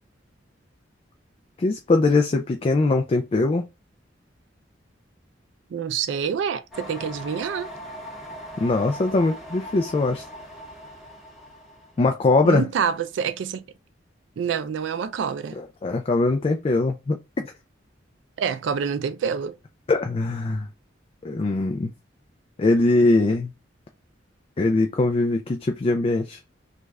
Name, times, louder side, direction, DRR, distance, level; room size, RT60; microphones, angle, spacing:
voice 1, 1.6-3.7 8.6-10.2 12.0-12.7 15.6-17.2 19.9-20.7 21.2-21.9 22.6-23.5 24.6-26.4, left 2 dB, 30° left, 0.3 m, -21 dB
voice 2, 5.7-7.7 12.4-13.6 14.4-15.6 18.4-19.5, right 7 dB, 70° right, 0.3 m, -27 dB
sound 1, 6.7-12.0, equal, ahead, 0.9 m, -40 dB
3.2 x 2.4 x 3.3 m
head